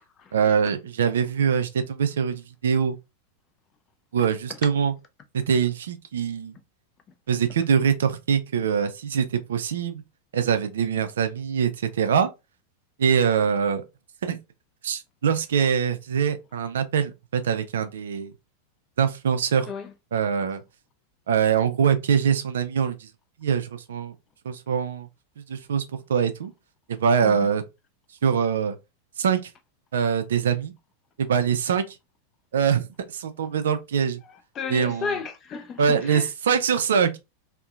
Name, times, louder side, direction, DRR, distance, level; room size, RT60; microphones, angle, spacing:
voice 1, 0.3-3.0 4.1-4.9 5.3-6.5 7.3-10.0 10.3-12.3 13.0-13.8 14.2-14.4 14.8-18.3 19.0-19.7 20.1-20.6 21.3-23.1 23.4-24.1 24.5-25.1 25.5-25.8 26.1-26.5 26.9-27.6 28.2-28.8 29.2-29.5 29.9-30.7 31.2-32.0 32.5-34.2 34.7-35.1 35.8-37.2, right 7 dB, 65° right, 0.3 m, -23 dB
voice 2, 4.2-4.6 19.7-19.9 27.2-27.5 34.2-36.3, left 6 dB, 30° left, 0.4 m, -34 dB
2.6 x 2.1 x 2.3 m
figure-of-eight pair, 90°, 0 cm